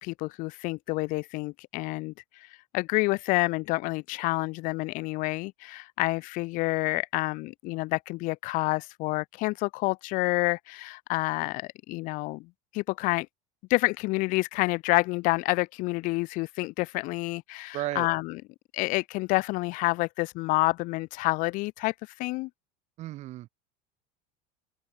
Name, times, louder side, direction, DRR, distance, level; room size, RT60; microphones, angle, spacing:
voice 1, 0.0-2.5 2.7-13.3 13.7-18.4 18.7-22.5, left 23 dB, 45° left, 0.5 m, -28 dB
voice 2, 17.7-18.1 23.0-23.5, right 16 dB, 35° right, 0.9 m, -34 dB
cardioid pair, 160°, 19 cm